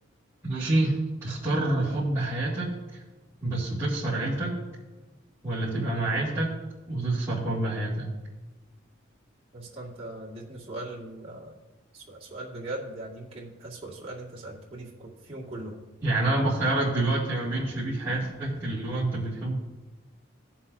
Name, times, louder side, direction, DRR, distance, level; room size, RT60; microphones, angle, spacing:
voice 1, 0.4-2.7 3.4-4.5 5.4-6.5 6.9-8.1 16.0-19.5, right 2 dB, 15° right, -13 dB, 2.5 m, -27 dB
voice 2, 9.5-11.6 11.9-15.8, right 2 dB, 30° right, -5 dB, 2.1 m, -40 dB
17.0 x 7.3 x 2.7 m, 1.1 s
head